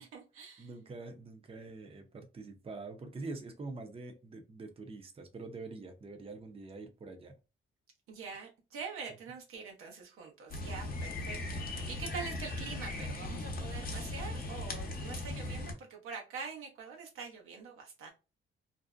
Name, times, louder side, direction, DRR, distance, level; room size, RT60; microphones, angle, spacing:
voice 1, 0.0-0.7 8.1-11.4 11.6-18.1, right 5 dB, 85° right, 0.8 m, -45 dB
voice 2, 0.6-7.4 11.2-11.3, right 3 dB, 25° right, 0.6 m, -45 dB
sound 1, 10.5-15.7, left 2 dB, 45° left, 0.7 m, -38 dB
2.5 x 2.0 x 2.4 m
cardioid pair, 80°, 21 cm